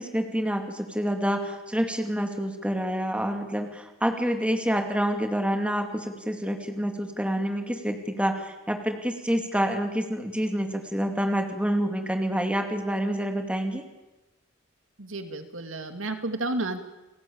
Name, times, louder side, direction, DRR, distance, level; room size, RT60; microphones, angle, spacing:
voice 1, 0.0-13.8, equal, 5° right, 5 dB, 2.5 m, -27 dB
voice 2, 15.0-16.8, right 2 dB, 70° right, 7 dB, 2.4 m, -31 dB
30.0 x 18.5 x 8.8 m, 1.1 s
head